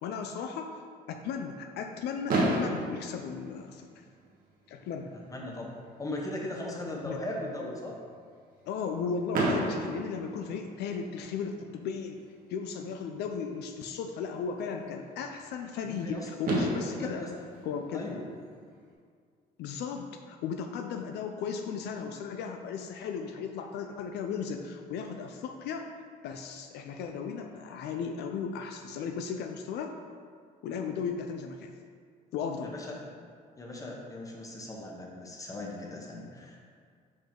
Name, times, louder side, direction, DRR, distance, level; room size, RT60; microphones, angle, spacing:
voice 1, 0.0-0.7 1.1-4.0 4.7-5.1 7.1-7.2 8.7-12.2 12.5-17.2 17.6-18.1 19.6-25.9 26.2-30.0 30.6-31.7 32.3-32.8, left 6 dB, 75° left, 5 dB, 0.5 m, -36 dB
Fireworks, 2.3-4.3 5.1-5.2 5.4-5.6 5.9-6.0 9.3-11.2 12.9-13.0 16.0-16.1 16.4-18.7, right 1 dB, 55° right, 1.2 m, -32 dB
voice 2, 5.1-8.0 15.8-16.3 17.0-17.3 17.9-18.2 32.6-33.0 33.6-36.6, left 1 dB, 20° left, -1 dB, 1.1 m, -38 dB
5.3 x 5.2 x 3.7 m, 2.1 s
cardioid pair, 110°, 17 cm